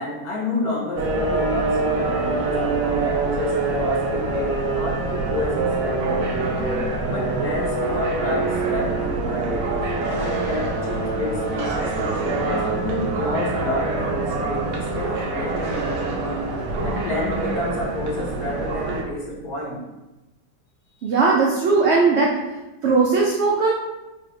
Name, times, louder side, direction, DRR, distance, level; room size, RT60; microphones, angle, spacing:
voice 1, 0.0-6.3 7.1-9.7 10.2-16.5 16.8-19.8, left 1 dB, 70° left, -4 dB, 1.6 m, -30 dB
sound 1, 1.0-19.0, right 3 dB, 60° right, 1.0 m, -25 dB
voice 2, 21.0-22.4 22.8-23.7, right 4 dB, 90° right, -3 dB, 0.5 m, -18 dB
4.6 x 3.3 x 2.6 m, 1.0 s
omnidirectional pair, 1.8 m